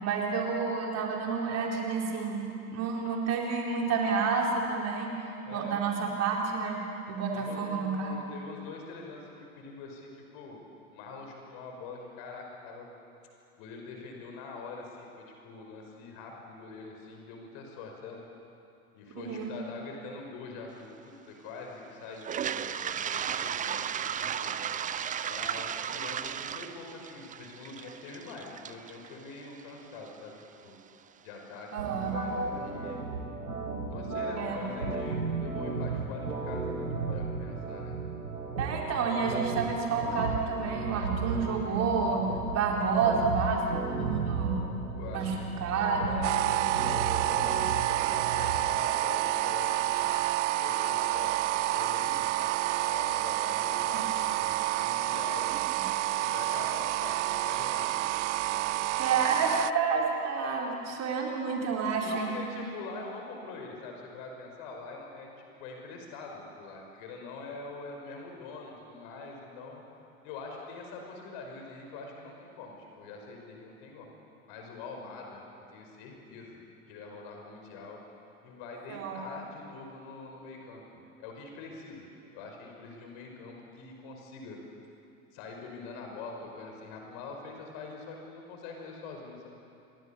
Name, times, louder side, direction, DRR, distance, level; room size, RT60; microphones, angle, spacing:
voice 1, 0.0-2.4 2.7-5.2 5.5-8.2 19.2-19.5 31.7-32.2 34.4-34.6 38.6-42.3 42.5-44.7 45.1-45.3 45.6-46.2 53.9-54.1 55.5-55.8 59.0-62.4 78.9-79.2, right 5 dB, 35° right, 0 dB, 4.2 m, -29 dB
voice 2, 5.4-5.8 7.3-10.6 10.9-12.9 13.6-18.2 18.9-24.6 25.2-30.8 31.2-31.7 31.9-33.0 33.9-38.0 41.6-41.8 45.0-45.4 46.1-50.3 50.6-52.5 52.9-55.5 56.2-58.8 62.0-74.1 74.5-75.4 75.7-76.6 76.9-78.0 78.4-82.1 82.3-84.6 85.3-89.5, left 3 dB, 50° left, 2 dB, 5.5 m, -44 dB
Toilet flush, 22.2-30.1, right 8 dB, 15° right, 0.7 m, -35 dB
sound 1, 31.8-48.8, right 4 dB, 80° right, 2.9 m, -35 dB
sound 2, 46.2-59.7, right 16 dB, 50° right, 0.6 m, -29 dB
29.0 x 23.0 x 7.2 m, 2.7 s
figure-of-eight pair, 80°, 45 cm